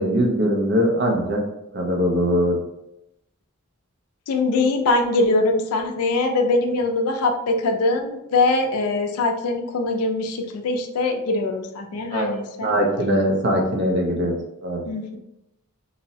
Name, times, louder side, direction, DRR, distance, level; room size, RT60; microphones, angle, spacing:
voice 1, 0.0-1.4 1.7-2.6 12.1-12.3 12.6-14.3 14.6-14.8, equal, 50° right, 0 dB, 0.5 m, -21 dB
voice 2, 4.3-12.7 14.8-15.2, left 2 dB, 90° left, 4 dB, 0.4 m, -22 dB
2.6 x 2.0 x 2.6 m, 0.85 s
head